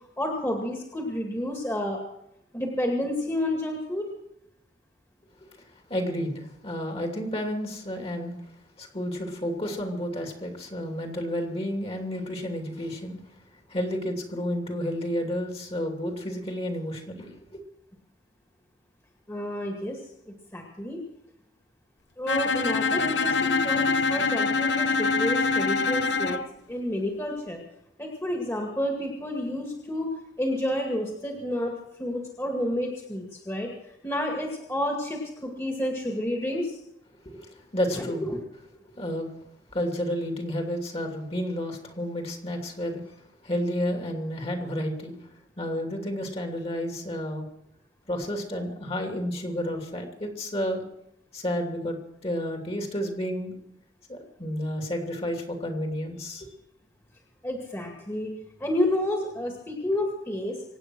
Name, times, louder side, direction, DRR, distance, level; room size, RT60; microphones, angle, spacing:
voice 1, 0.2-2.0 2.5-4.1 19.3-20.0 20.3-21.0 22.2-26.4 26.7-27.6 28.0-30.1 30.4-31.7 32.0-36.8 37.9-38.1 57.4-58.3 58.6-60.6, left 1 dB, 15° left, 1 dB, 2.2 m, -30 dB
voice 2, 5.6-8.5 8.8-13.3 13.7-17.6 37.2-38.6 39.0-39.3 39.7-47.4 48.1-50.8 51.3-52.0 52.2-53.6 54.1-56.5, equal, 35° left, 3 dB, 2.7 m, -31 dB
Bowed string instrument, 22.3-26.5, left 4 dB, 70° left, 0.8 m, -24 dB
24.5 x 9.0 x 6.2 m, 0.81 s
head